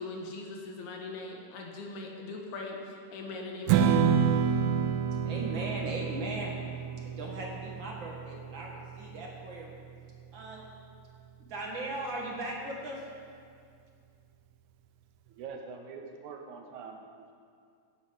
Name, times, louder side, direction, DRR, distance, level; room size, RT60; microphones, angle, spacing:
voice 1, 0.0-4.2, left 3 dB, 70° left, 1 dB, 2.8 m, -40 dB
Strum, 3.7-10.0, right 7 dB, 90° right, 2.2 m, -29 dB
voice 2, 5.2-6.5 7.0-9.7 10.3-10.6 11.4-13.0, right 2 dB, 40° right, -2 dB, 2.2 m, -38 dB
voice 3, 15.3-17.3, right 5 dB, 70° right, 3 dB, 2.3 m, -44 dB
14.5 x 9.0 x 5.6 m, 2.3 s
omnidirectional pair, 3.7 m